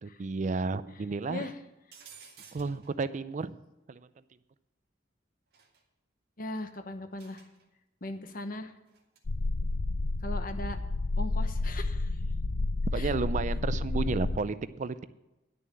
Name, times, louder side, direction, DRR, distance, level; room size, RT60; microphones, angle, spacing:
voice 1, 0.0-1.5 2.5-3.5 3.9-4.1 12.9-15.0, right 4 dB, 40° right, 14 dB, 0.4 m, -32 dB
voice 2, 1.3-1.6 6.4-7.4 8.0-8.7 10.2-10.8 11.2-12.2 12.9-13.1, left 2 dB, 50° left, 8 dB, 1.0 m, -39 dB
sound 1, 1.9-2.9 5.5-5.8 7.2-7.6 8.9-9.2, right 6 dB, 55° right, 2.0 m, -53 dB
sound 2, 9.3-14.4, left 2 dB, 65° left, 0.6 m, -30 dB
11.0 x 6.7 x 7.5 m, 0.99 s
head